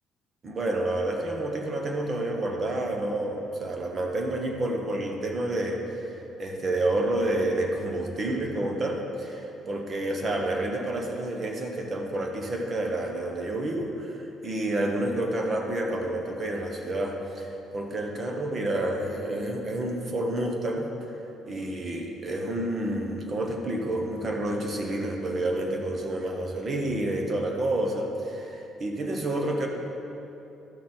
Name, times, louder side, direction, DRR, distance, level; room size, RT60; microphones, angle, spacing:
voice 1, 0.4-14.2 14.4-20.9 21.5-29.7, right 1 dB, 35° right, 2 dB, 1.2 m, -29 dB
13.5 x 6.0 x 4.4 m, 2.9 s
cardioid pair, 130°, 0 cm